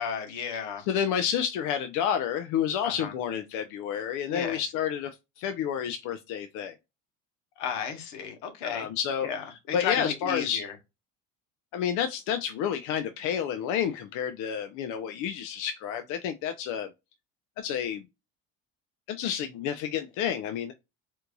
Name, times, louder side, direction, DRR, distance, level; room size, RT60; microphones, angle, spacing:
voice 1, 0.0-0.8 2.8-3.1 4.3-4.6 7.6-8.9 9.2-10.7 19.2-19.3, left 7 dB, 90° left, 1.2 m, -33 dB
voice 2, 0.9-6.7 8.6-9.3 9.7-10.6 11.7-16.9 17.6-18.0 19.1-20.7, left 8 dB, 70° left, 0.5 m, -30 dB
4.4 x 2.6 x 2.2 m
cardioid pair, 140°, 32 cm